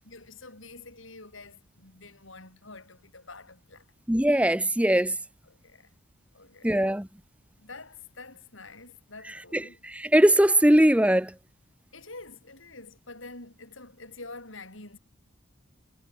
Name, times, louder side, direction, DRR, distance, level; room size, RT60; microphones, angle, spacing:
voice 1, 0.1-3.9 5.5-5.9 6.3-6.8 7.6-9.8 11.9-15.0, left 3 dB, 75° left, 7.3 m, -47 dB
voice 2, 4.1-5.1 6.6-7.1 9.5-11.3, right 1 dB, 5° right, 0.9 m, -21 dB
head